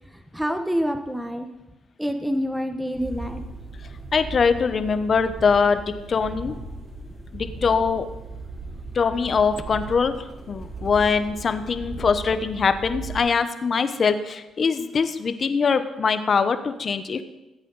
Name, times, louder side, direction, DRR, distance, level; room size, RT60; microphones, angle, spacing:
voice 1, 0.1-1.5 2.0-3.4, equal, 5° right, 7 dB, 0.9 m, -27 dB
sound 1, 2.9-13.2, right 3 dB, 25° right, 2.7 m, -37 dB
voice 2, 4.1-6.5 7.3-8.1 8.9-10.1 10.5-17.2, left 5 dB, 45° left, 10 dB, 0.8 m, -22 dB
14.0 x 8.2 x 4.0 m, 1.0 s
cardioid pair, 90°, 0 cm